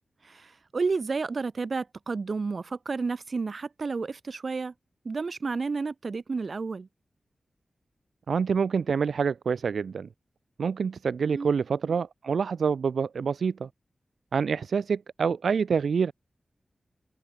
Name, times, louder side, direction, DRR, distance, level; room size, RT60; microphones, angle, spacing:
voice 1, 0.2-4.7 5.0-6.9 11.2-11.5, right 4 dB, 60° right, 6.2 m, -31 dB
voice 2, 8.3-10.1 10.6-13.7 14.3-16.1, right 6 dB, 85° right, 1.8 m, -26 dB
wide cardioid pair, 70°, 0 cm